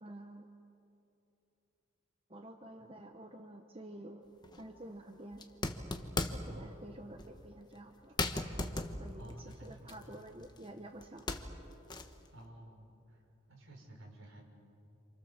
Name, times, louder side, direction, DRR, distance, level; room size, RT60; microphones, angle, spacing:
voice 1, 0.0-0.5 2.3-4.2 4.5-5.4 6.3-8.2 9.0-11.3, right 1 dB, 25° right, 4 dB, 1.1 m, -50 dB
sound 1, 4.4-4.6 5.3-6.6 7.2-7.4 7.8-7.9 8.2-10.7 11.0-12.3, left 2 dB, 20° left, 1.2 m, -38 dB
voice 2, 6.4-6.9 9.1-10.4 12.3-13.2 13.5-14.4, right 1 dB, 65° right, 0 dB, 5.5 m, -53 dB
28.5 x 27.5 x 7.3 m, 2.9 s
head